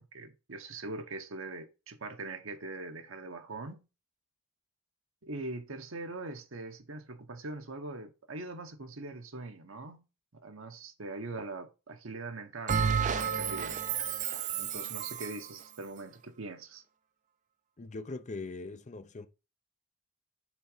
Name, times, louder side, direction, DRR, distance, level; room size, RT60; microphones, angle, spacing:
voice 1, 0.0-3.8 5.2-10.0 10.3-13.8 14.6-16.8, right 2 dB, 75° right, 1.0 m, -42 dB
Bell, 12.7-15.5, right 7 dB, 40° right, 0.5 m, -31 dB
voice 2, 17.8-19.3, left 3 dB, 35° left, 0.6 m, -41 dB
6.6 x 3.8 x 4.9 m
head